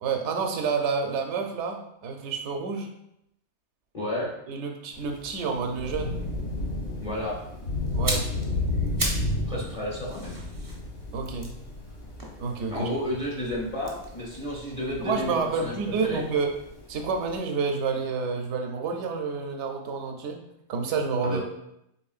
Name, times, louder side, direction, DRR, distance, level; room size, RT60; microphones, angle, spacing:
voice 1, 0.0-2.9 4.5-6.2 7.9-8.3 11.1-11.5 12.4-12.9 15.0-16.5 16.9-20.4 20.7-21.4, right 5 dB, 80° right, 3 dB, 0.9 m, -29 dB
voice 2, 3.9-4.3 7.0-7.4 9.5-10.4 12.7-15.7 16.0-16.2 21.2-21.4, left 1 dB, 35° left, -5 dB, 0.7 m, -31 dB
Thunder / Rain, 4.9-17.4, left 2 dB, 75° left, 1.3 m, -33 dB
sound 1, 7.9-9.4 9.7-12.9 13.8-15.8 16.1-16.3, right 2 dB, 25° right, 0.4 m, -36 dB
4.3 x 3.1 x 2.4 m, 0.81 s
omnidirectional pair, 1.2 m